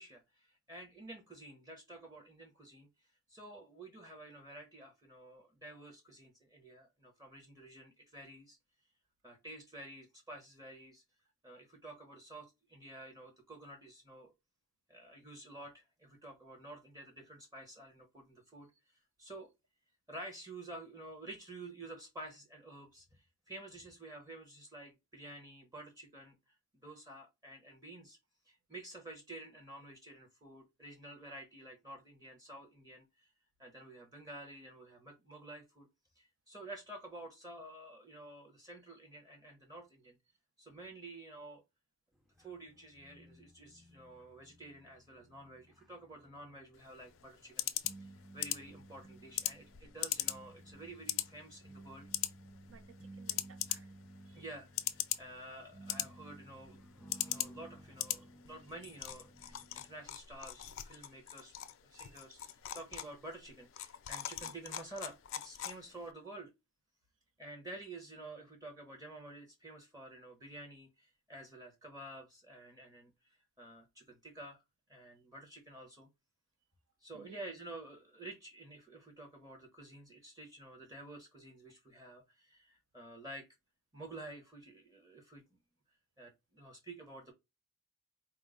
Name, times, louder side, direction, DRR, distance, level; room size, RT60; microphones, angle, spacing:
voice 1, 0.0-2.9 3.3-8.6 9.2-11.0 11.4-14.3 14.9-18.7 19.2-19.5 20.1-26.4 26.8-28.2 28.5-33.3 33.6-35.9 36.2-40.2 40.6-41.6 42.4-47.7 48.0-48.1 48.3-52.1 54.3-61.5 61.9-66.5 67.4-73.1 73.6-74.6 74.9-76.1 77.0-83.5 83.9-85.4 86.2-87.3, right 1 dB, 15° right, 0.8 m, -50 dB
sound 1, 42.3-60.1, right 1 dB, ahead, 0.4 m, -57 dB
sound 2, 46.7-66.1, left 13 dB, 65° left, 0.4 m, -42 dB
voice 2, 52.7-53.9 54.3-54.4 61.9-62.2 62.7-62.8 64.4-64.5 77.1-77.5, right 5 dB, 65° right, 0.6 m, -59 dB
4.4 x 2.0 x 3.6 m
head